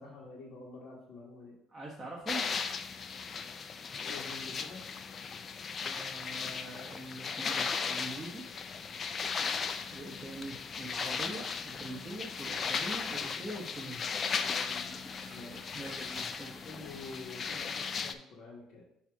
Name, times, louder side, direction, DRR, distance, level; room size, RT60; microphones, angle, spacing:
voice 1, 0.0-1.5 4.0-4.8 14.3-14.9 15.3-15.8 16.6-18.8, left 3 dB, 60° left, -5 dB, 1.3 m, -48 dB
voice 2, 1.7-2.4 5.8-8.4 9.9-14.0 15.7-16.7, right 1 dB, 15° right, -4 dB, 1.1 m, -43 dB
sound 1, 2.3-18.1, left 5 dB, 40° left, 0.4 m, -37 dB
sound 2, 8.0-17.9, equal, 5° left, 1.8 m, -56 dB
6.9 x 2.8 x 5.8 m, 0.77 s
cardioid pair, 115°, 0 cm